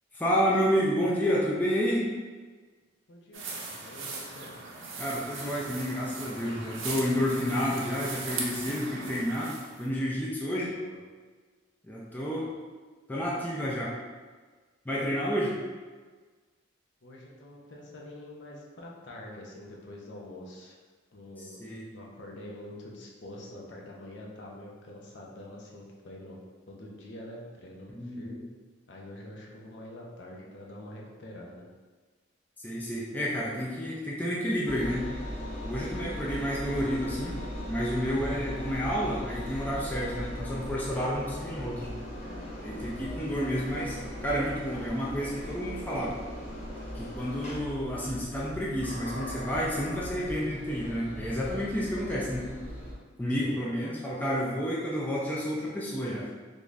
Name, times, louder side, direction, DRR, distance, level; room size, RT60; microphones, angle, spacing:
voice 1, 0.1-2.0 5.0-9.5 9.8-10.7 11.8-12.5 13.1-13.9 14.9-15.5 21.4-21.9 27.9-28.4 32.6-35.1 35.6-37.4 37.7-41.9 42.6-46.2 47.0-52.6 53.2-56.3, equal, 10° left, -5 dB, 0.4 m, -30 dB
voice 2, 3.1-4.5 10.7-11.0 12.3-12.5 17.0-20.8 21.1-21.6 21.9-26.4 26.7-28.4 28.9-31.7 42.8-43.1 53.3-53.6, left 1 dB, 60° left, -2 dB, 0.6 m, -46 dB
sound 1, 3.3-9.9, right 3 dB, 90° right, 0.7 m, -39 dB
Engine, 34.6-52.9, left 1 dB, 35° left, 1.1 m, -39 dB
3.6 x 2.5 x 3.1 m, 1.4 s
head